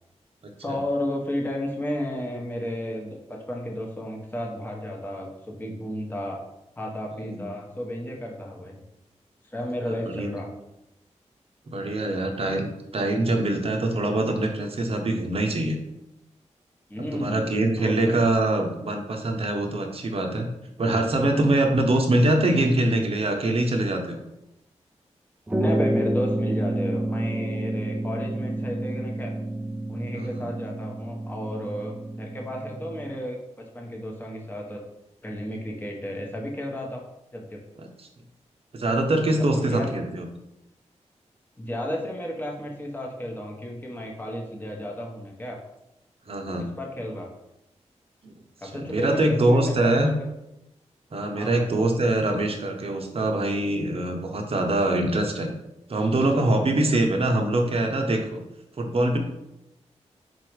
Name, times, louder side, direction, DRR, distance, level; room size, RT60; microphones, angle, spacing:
voice 1, 0.6-6.4 6.8-8.8 9.4-10.5 16.9-17.4 17.7-18.2 25.6-29.3 29.9-33.4 33.7-34.8 35.2-37.0 37.3-37.6 39.4-39.9 41.6-45.6 46.6-47.3 48.6-50.3 51.3-51.7, left 1 dB, 15° left, -1 dB, 0.8 m, -33 dB
voice 2, 10.1-10.4 11.7-15.8 17.1-20.5 20.8-24.2 30.1-30.5 37.8-38.1 38.7-40.3 46.3-46.7 48.2-48.3 48.7-50.1 51.1-55.5 55.9-58.4 58.8-59.2, right 1 dB, 55° right, 3 dB, 0.7 m, -24 dB
sound 1, 25.5-33.2, right 1 dB, 10° right, 0.4 m, -29 dB
4.0 x 2.3 x 4.6 m, 0.89 s
cardioid pair, 75°, 12 cm